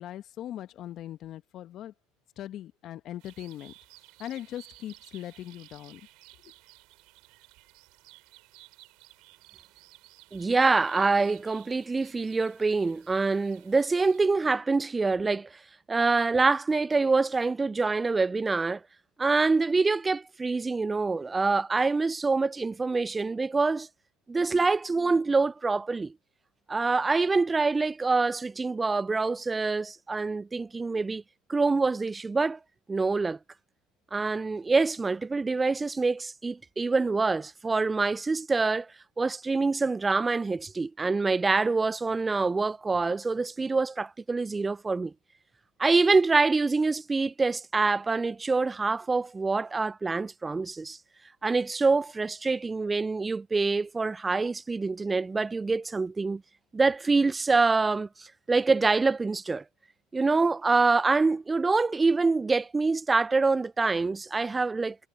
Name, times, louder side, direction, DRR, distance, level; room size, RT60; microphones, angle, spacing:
voice 1, 0.0-1.9 2.4-3.7 4.2-6.0 6.4-6.5, left 12 dB, 55° left, 1.5 m, -40 dB
sound 1, 3.2-14.3, right 23 dB, 65° right, 6.1 m, -55 dB
voice 2, 10.3-15.5 15.9-18.8 19.2-23.9 24.3-26.1 26.7-31.2 31.5-32.6 32.9-33.4 34.1-38.9 39.2-45.1 45.8-51.0 51.4-56.4 56.7-59.6 60.1-65.0, right 3 dB, 20° right, 0.4 m, -25 dB
hypercardioid pair, 75°, 0 cm